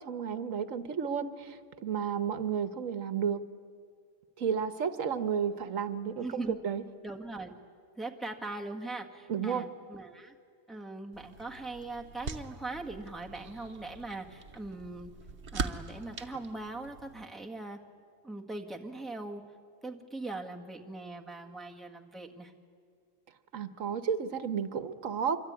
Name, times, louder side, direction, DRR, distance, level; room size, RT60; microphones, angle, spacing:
voice 1, 0.1-3.4 4.4-6.8 9.3-9.6 23.5-25.4, right 7 dB, 80° right, 11 dB, 1.5 m, -32 dB
voice 2, 6.2-6.5 7.0-7.5 8.0-10.4 10.7-15.1 15.5-17.8 18.2-19.4 19.8-22.5, right 2 dB, ahead, 0 dB, 1.7 m, -40 dB
sound 1, 11.1-17.3, right 4 dB, 60° right, 1.4 m, -42 dB
25.5 x 23.5 x 9.6 m, 2.1 s
omnidirectional pair, 1.4 m